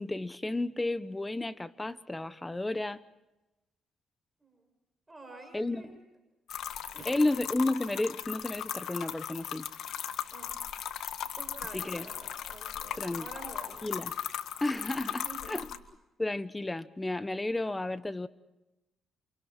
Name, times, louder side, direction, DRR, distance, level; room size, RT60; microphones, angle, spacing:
voice 1, 0.0-3.0 5.5-5.9 7.0-9.7 11.7-12.1 13.0-13.2 13.8-14.2 14.6-15.7 16.2-18.3, left 2 dB, 15° left, 1.2 m, -32 dB
voice 2, 5.1-5.9 6.9-7.2 10.3-10.6 11.3-13.9 15.2-15.6, right 2 dB, 15° right, 7.0 m, -48 dB
sound 1, 6.5-15.8, left 9 dB, 75° left, 1.6 m, -38 dB
29.0 x 28.0 x 4.5 m
cardioid pair, 90°, 0 cm